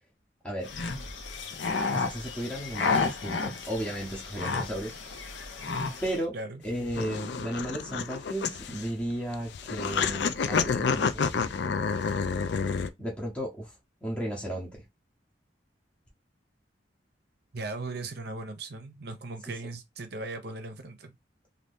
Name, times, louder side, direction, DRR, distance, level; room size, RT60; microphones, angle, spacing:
sound 1, 0.6-6.2, left 4 dB, 85° left, 0.7 m, -32 dB
voice 1, 1.9-5.2 6.0-6.4 6.6-11.8 13.0-13.7 14.0-14.7, right 1 dB, 5° left, 0.7 m, -34 dB
sound 2, 6.7-12.9, left 5 dB, 65° left, 0.4 m, -29 dB
voice 2, 17.5-21.1, right 2 dB, 60° right, 0.6 m, -38 dB
2.7 x 2.6 x 3.4 m
head